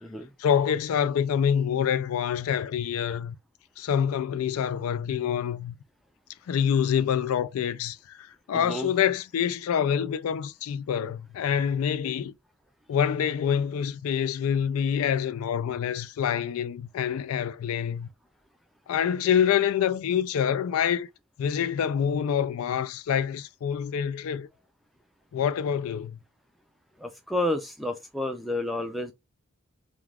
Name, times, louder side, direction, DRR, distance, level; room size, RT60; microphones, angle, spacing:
voice 1, 0.4-3.4 3.8-5.8 6.5-12.3 12.9-18.1 18.9-21.1 21.4-24.5 25.3-26.2, left 8 dB, 80° left, 0.3 m, -26 dB
voice 2, 8.5-8.9 27.0-29.1, left 1 dB, ahead, 0.4 m, -30 dB
2.3 x 2.3 x 3.3 m
head